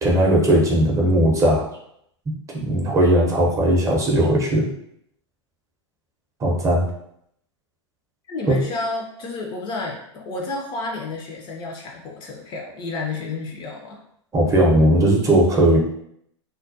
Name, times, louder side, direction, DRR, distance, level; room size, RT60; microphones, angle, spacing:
voice 1, 0.0-1.7 2.3-4.7 6.4-6.9 8.5-8.6 14.3-15.8, right 1 dB, 20° right, -1 dB, 0.6 m, -18 dB
voice 2, 8.3-14.0, left 3 dB, 30° left, 0 dB, 0.4 m, -31 dB
2.2 x 2.1 x 2.6 m, 0.72 s
hypercardioid pair, 100°, 15 cm